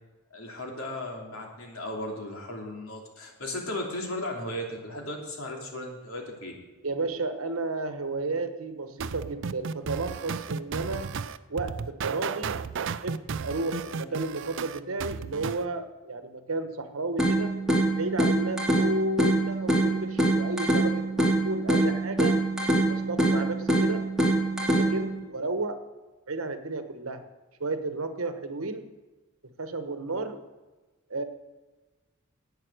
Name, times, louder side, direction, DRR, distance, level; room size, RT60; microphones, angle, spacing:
voice 1, 0.3-6.5, left 1 dB, 90° left, 0 dB, 3.1 m, -36 dB
voice 2, 6.8-11.2 11.5-12.6 13.0-17.6 18.0-22.4 22.9-24.0 24.8-25.8 26.3-27.2 27.6-28.9 29.6-30.4 31.1-31.2, right 2 dB, 85° right, 9 dB, 1.2 m, -32 dB
sound 1, 9.0-15.6, right 5 dB, 65° right, 0.5 m, -34 dB
sound 2, 17.2-25.2, right 1 dB, 5° right, 2.6 m, -25 dB
11.0 x 9.0 x 7.9 m, 1.2 s
head